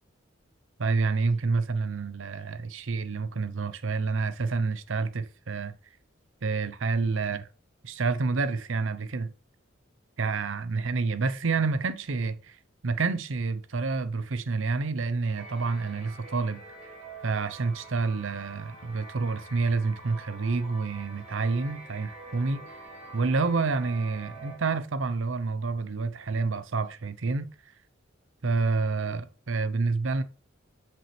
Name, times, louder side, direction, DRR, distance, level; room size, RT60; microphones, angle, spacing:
voice 1, 0.8-5.8 6.4-7.5 7.8-9.3 10.2-12.6 12.8-16.6 17.2-22.8 23.1-27.5 28.4-30.2, right 4 dB, 70° right, 0.6 m, -28 dB
sound 1, 15.4-24.6, right 3 dB, 30° right, 3.7 m, -46 dB
7.7 x 6.1 x 3.2 m
head